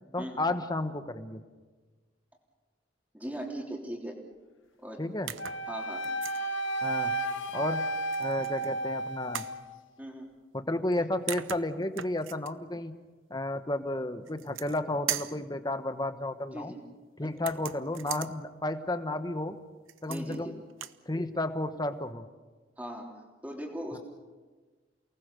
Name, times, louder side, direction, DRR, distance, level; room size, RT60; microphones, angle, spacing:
voice 1, 0.1-1.4 5.0-5.3 6.8-7.1 7.5-7.9 8.2-9.4 10.5-12.9 13.3-16.7 17.2-19.6 20.0-20.6 21.1-22.2 23.9-24.0, left 1 dB, 20° left, 9 dB, 1.1 m, -32 dB
voice 2, 3.1-4.1 4.8-5.0 5.7-6.0 10.0-10.3 11.0-11.1 16.5-16.8 17.2-17.3 20.1-20.5 22.8-23.1 23.4-24.0, right 1 dB, 10° right, 0 dB, 3.3 m, -39 dB
sound 1, 5.3-5.6 6.0-6.4 8.1-8.7 9.3-9.6 10.9-11.0 11.3-12.5 14.3-14.8 15.1-15.4 17.4-18.3 19.9-20.4 20.7-21.0, right 11 dB, 90° right, 0.8 m, -38 dB
Wind instrument woodwind instrument, 5.4-9.7, right 2 dB, 80° left, 1.5 m, -32 dB
29.0 x 19.0 x 6.8 m, 1.3 s
head